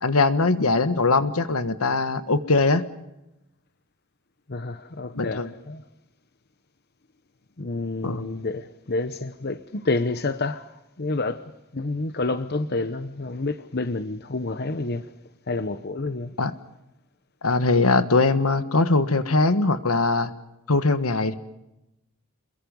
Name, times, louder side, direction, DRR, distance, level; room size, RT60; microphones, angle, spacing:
voice 1, 0.0-2.8 5.1-5.5 8.0-8.2 16.4-16.5 17.4-20.3 20.7-21.3, left 3 dB, 80° left, 1.6 m, -21 dB
voice 2, 4.5-5.8 7.6-11.4 11.7-15.1 15.5-16.4, left 2 dB, 45° left, 0.9 m, -29 dB
28.5 x 22.0 x 5.4 m
head